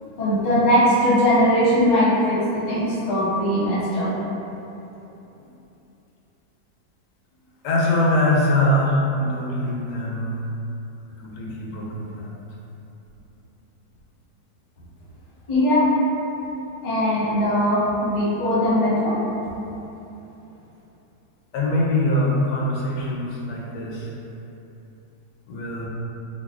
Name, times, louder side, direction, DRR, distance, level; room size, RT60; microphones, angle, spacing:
voice 1, 0.2-4.1 15.5-15.9 16.8-19.2, equal, 35° left, -10 dB, 0.8 m, -20 dB
voice 2, 7.6-10.3 11.2-12.3 21.5-24.1 25.5-25.9, left 1 dB, 80° left, -4 dB, 1.2 m, -23 dB
3.9 x 2.3 x 2.4 m, 2.9 s
omnidirectional pair, 1.8 m